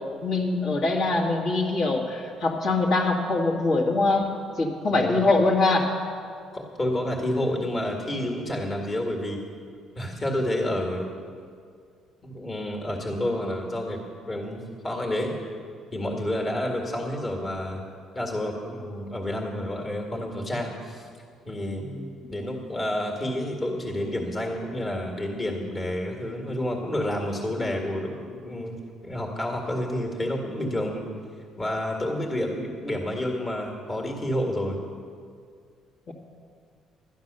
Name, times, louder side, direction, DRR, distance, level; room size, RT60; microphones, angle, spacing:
voice 1, 0.2-5.9 21.8-22.0 36.1-36.2, left 2 dB, 60° left, -2 dB, 2.1 m, -23 dB
voice 2, 4.9-5.3 6.5-9.4 10.0-11.1 12.2-14.0 14.3-15.3 15.9-17.8 18.1-21.0 21.5-21.8 22.3-28.8 29.0-31.0 31.6-34.8, left 1 dB, 30° left, 1 dB, 2.0 m, -29 dB
12.5 x 9.4 x 6.8 m, 2.2 s
cardioid pair, 85°, 0 cm